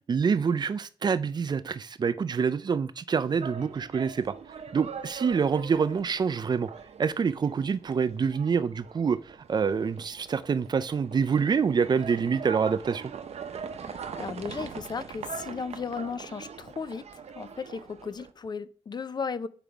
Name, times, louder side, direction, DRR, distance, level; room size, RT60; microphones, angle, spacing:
voice 1, 0.1-4.3 4.7-6.7 7.0-13.1, right 6 dB, 40° right, 0.3 m, -26 dB
sound 1, 3.2-18.3, right 6 dB, 85° right, 0.6 m, -42 dB
voice 2, 13.8-17.0 17.4-19.5, left 5 dB, 40° left, 0.4 m, -35 dB
7.0 x 4.9 x 4.5 m
wide cardioid pair, 165°, 11 cm